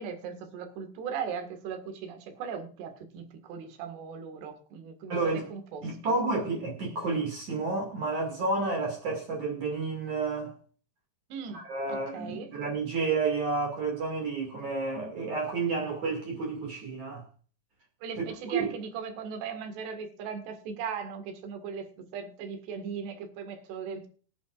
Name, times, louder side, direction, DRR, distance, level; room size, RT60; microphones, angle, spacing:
voice 1, 0.0-6.2 11.3-11.6 11.9-12.5 18.0-24.1, right 6 dB, 70° right, 3.8 m, -38 dB
voice 2, 5.1-5.5 5.8-10.5 11.5-17.2 18.5-18.7, right 3 dB, 45° right, 3.2 m, -30 dB
25.0 x 8.7 x 2.5 m
omnidirectional pair, 5.3 m